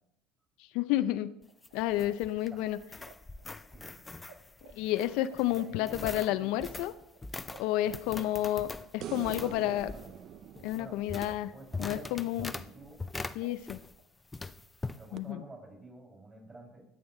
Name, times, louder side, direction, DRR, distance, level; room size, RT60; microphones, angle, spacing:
voice 1, 0.7-1.4 1.7-2.8 4.7-6.9 7.6-8.7 8.9-9.9 10.6-11.5 11.8-12.5 13.4-13.8 15.1-15.4, left 14 dB, 75° left, 11 dB, 0.5 m, -30 dB
sound 1, 1.4-14.0 14.3-15.0, left 3 dB, 10° left, 0.4 m, -43 dB
sound 2, 1.4-4.3 4.6-9.3 9.6-12.2 12.4-14.1, right 7 dB, 80° right, 1.4 m, -56 dB
voice 2, 3.7-4.0 5.5-6.8 7.8-8.3 9.2-10.3 10.8-11.1 11.3-13.0 14.9-16.9, right 2 dB, 20° right, 0 dB, 6.2 m, -50 dB
sound 3, 9.0-12.3 15.2-15.3, right 10 dB, 50° right, 0.5 m, -45 dB
22.5 x 8.8 x 3.3 m, 0.79 s
cardioid pair, 135°, 0 cm